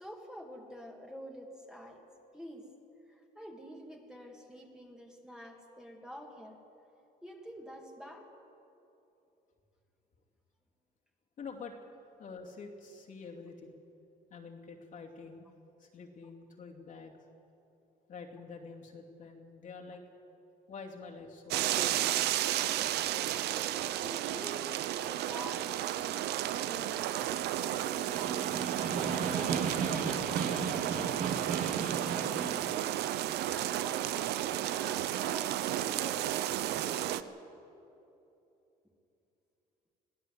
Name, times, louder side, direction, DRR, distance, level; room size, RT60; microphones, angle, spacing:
voice 1, 0.0-2.1 2.3-2.7 3.1-6.6 7.2-8.3 24.0-28.7 28.9-34.4 34.7-37.3, equal, 5° right, 1 dB, 2.3 m, -48 dB
voice 2, 11.4-11.8 12.2-13.8 14.3-15.5 15.8-17.1 18.1-20.0 20.7-22.1, left 4 dB, 50° left, 0 dB, 2.6 m, -47 dB
sound 1, 21.5-37.2, right 13 dB, 75° right, 0.7 m, -33 dB
Snare drum, 27.8-32.7, right 5 dB, 50° right, 2.4 m, -35 dB
22.0 x 15.0 x 8.0 m, 2.9 s
cardioid pair, 110°, 17 cm